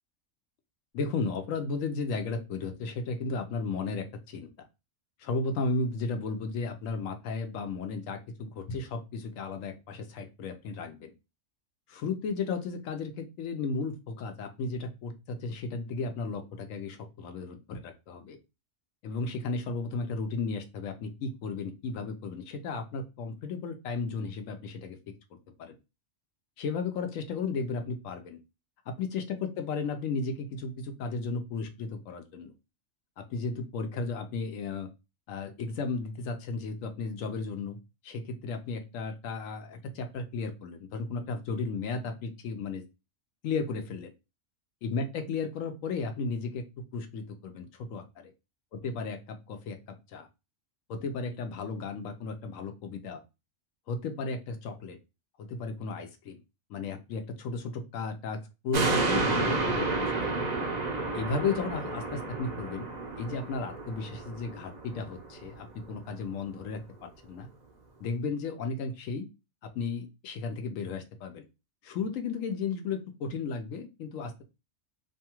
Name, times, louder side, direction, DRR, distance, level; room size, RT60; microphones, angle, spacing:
voice 1, 0.9-4.5 5.2-11.1 11.9-18.4 19.0-25.0 25.6-25.8 26.6-28.4 28.9-32.5 33.2-34.9 35.3-37.8 38.0-42.8 43.4-44.1 44.8-46.6 46.9-48.3 48.7-49.8 50.1-50.3 50.9-53.2 53.9-55.0 55.4-56.4 56.7-58.4 58.6-60.6 61.1-62.9 63.2-67.5 68.0-69.3 69.7-71.4 71.8-74.4, left 4 dB, 85° left, 6 dB, 1.0 m, -34 dB
sound 1, 58.7-65.4 65.8-65.9, right 3 dB, 55° right, 0.5 m, -31 dB
2.6 x 2.3 x 2.9 m, 0.26 s
omnidirectional pair, 1.3 m